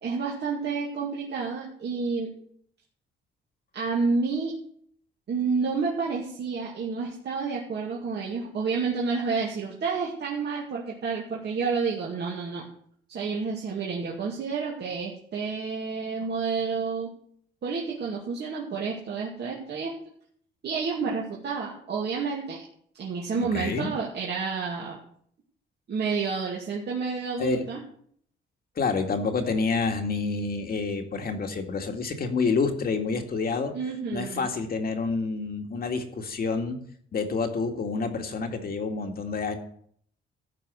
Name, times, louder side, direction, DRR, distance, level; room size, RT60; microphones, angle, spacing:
voice 1, 0.0-2.3 3.7-4.6 5.3-12.7 13.1-17.1 17.6-19.9 20.6-22.6 23.0-25.0 25.9-27.8 33.7-34.5, right 5 dB, 60° right, -3 dB, 2.3 m, -30 dB
voice 2, 23.4-23.9 27.4-27.6 28.8-33.7 34.1-36.8 37.1-39.6, left 4 dB, 50° left, 4 dB, 2.0 m, -28 dB
13.5 x 4.8 x 8.1 m, 0.63 s
cardioid pair, 90°, 20 cm